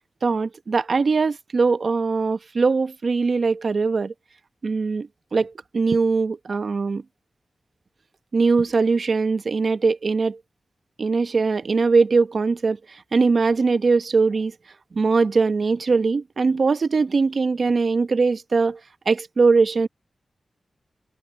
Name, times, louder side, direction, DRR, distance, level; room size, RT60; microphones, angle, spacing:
voice 1, 0.2-4.1 4.6-7.0 8.3-10.4 11.0-12.8 13.1-14.5 14.9-18.8 19.1-19.9, right 4 dB, 55° right, 0.9 m, -21 dB
wide cardioid pair, 130°, 0 cm